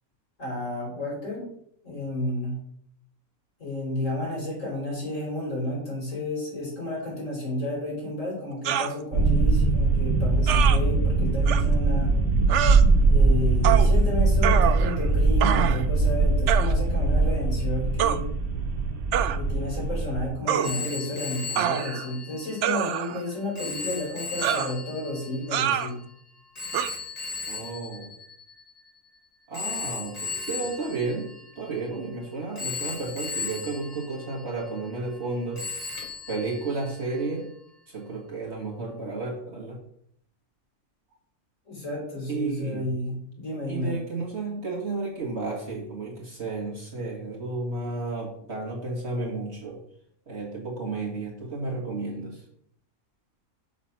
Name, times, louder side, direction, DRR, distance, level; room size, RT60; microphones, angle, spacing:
voice 1, 0.4-1.5 1.8-2.6 3.6-12.1 13.1-18.3 19.3-26.0 41.7-44.0, left 1 dB, 60° left, -4 dB, 4.2 m, -32 dB
sound 1, 8.6-8.9 10.5-10.8 11.5-11.6 12.5-12.8 13.6-13.9 14.4-15.0 15.4-15.8 16.5-16.7 18.0-18.2 19.1-19.4 20.5-20.7 21.6-22.1 22.6-23.2 24.4-24.7 25.5-25.9 26.7-26.9, right 10 dB, 65° right, 0.8 m, -25 dB
sound 2, 9.1-20.3, right 3 dB, 80° right, 1.7 m, -21 dB
Telephone, 20.6-29.0 29.5-32.1 32.6-35.3 35.6-37.3, left 4 dB, 25° left, 1.6 m, -37 dB
voice 2, 27.5-28.1 29.5-31.3 31.6-35.7 36.3-37.5 37.9-39.8 42.3-42.9 43.7-49.8 50.3-52.4, right 3 dB, 50° right, -3 dB, 1.9 m, -32 dB
6.5 x 6.0 x 5.8 m, 0.69 s
omnidirectional pair, 1.5 m